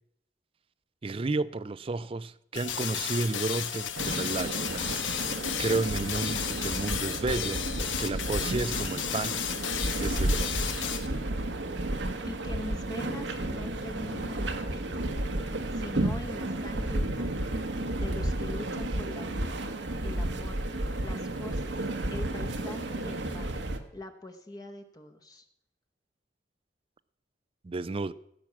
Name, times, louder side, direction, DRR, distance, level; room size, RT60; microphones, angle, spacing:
voice 1, 1.0-5.0 5.3-7.6 8.0-9.4 10.0-10.8 27.6-28.1, right 3 dB, 30° right, 0.4 m, -32 dB
sound 1, 2.5-11.1, left 9 dB, 90° left, 1.1 m, -33 dB
sound 2, 3.9-23.8, right 1 dB, 70° right, 1.1 m, -32 dB
voice 2, 12.3-14.5 14.7-15.2 15.7-17.6 18.0-19.6 20.0-20.6 21.0-21.8 22.1-23.6 23.9-25.4, left 1 dB, 20° left, 0.9 m, -43 dB
15.0 x 6.1 x 7.2 m
head